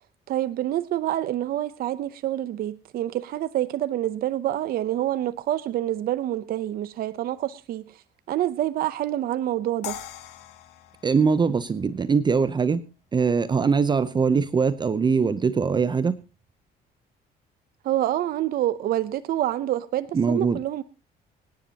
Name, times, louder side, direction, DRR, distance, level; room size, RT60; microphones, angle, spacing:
voice 1, 0.3-10.0 17.8-20.8, right 13 dB, 60° right, 0.7 m, -27 dB
sound 1, 9.8-12.9, left 12 dB, 85° left, 2.3 m, -42 dB
voice 2, 11.0-12.8 13.1-16.2 20.1-20.6, right 5 dB, 25° right, 0.7 m, -22 dB
25.0 x 10.0 x 2.9 m
cardioid pair, 110°, 17 cm